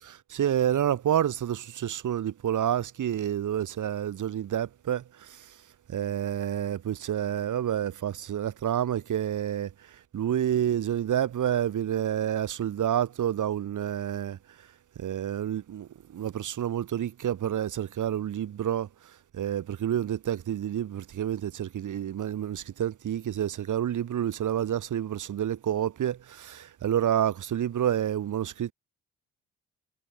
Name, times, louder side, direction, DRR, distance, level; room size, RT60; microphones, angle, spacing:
voice 1, 0.0-5.6 5.9-14.7 15.0-28.7, right 10 dB, 60° right, 6.9 m, -29 dB
hypercardioid pair, 50°, 34 cm